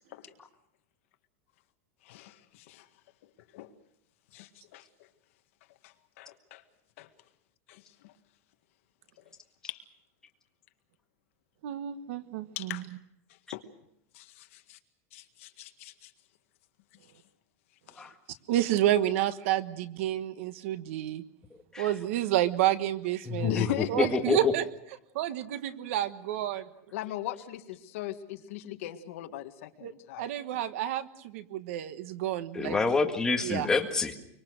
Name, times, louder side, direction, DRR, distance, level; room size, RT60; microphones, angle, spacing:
voice 1, 2.0-2.9 3.5-3.7 4.3-4.9 5.8-6.6 7.0-7.1 7.7-8.1 9.7-9.8 12.6-12.9 13.5-13.6 14.1-14.8 15.1-16.1 17.9-18.1 23.4-24.2 26.9-30.3, left 13 dB, 60° left, 7 dB, 1.8 m, -39 dB
voice 2, 11.6-12.8 18.5-21.2 21.8-23.5 23.9-24.6 25.1-26.7 29.8-29.9 30.2-32.8 33.4-33.7, right 13 dB, 60° right, 11 dB, 1.3 m, -29 dB
voice 3, 23.3-23.7 24.0-24.5 32.5-34.1, left 4 dB, 10° left, 2 dB, 1.9 m, -27 dB
24.5 x 24.5 x 6.5 m, 0.77 s
supercardioid pair, 170°, 8 cm